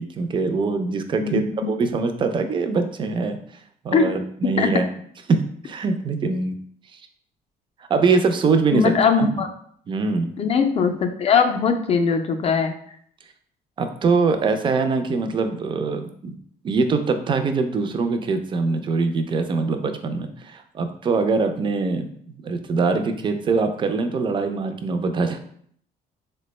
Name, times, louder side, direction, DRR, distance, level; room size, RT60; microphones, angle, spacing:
voice 1, 0.0-3.4 3.8-4.9 5.3-6.5 7.9-8.9 9.2-9.3 9.9-10.4 13.8-16.3 16.6-22.1 22.4-25.4, right 4 dB, 30° right, 7 dB, 0.4 m, -23 dB
voice 2, 8.7-9.5 10.4-12.7, left 5 dB, 35° left, 6 dB, 0.4 m, -20 dB
3.3 x 2.1 x 3.0 m, 0.63 s
cardioid pair, 110°, 17 cm